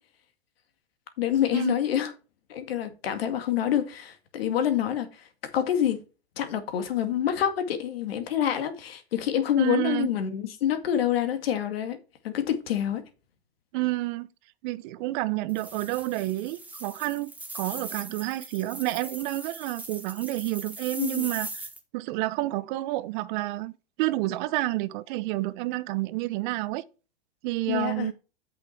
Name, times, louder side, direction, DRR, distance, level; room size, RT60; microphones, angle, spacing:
voice 1, 1.2-2.1 2.5-5.2 5.5-6.0 6.4-12.0 12.2-13.0 21.0-21.3 27.7-28.1, left 10 dB, 75° left, 2.1 m, -27 dB
voice 2, 9.6-10.1 13.7-14.3 14.6-17.3 17.5-21.7 21.9-23.7 24.0-26.8 27.4-28.1, right 18 dB, 50° right, 0.9 m, -29 dB
sound 1, 15.5-21.8, right 2 dB, 5° right, 1.6 m, -40 dB
8.3 x 6.0 x 4.5 m
hypercardioid pair, 115°, 30 cm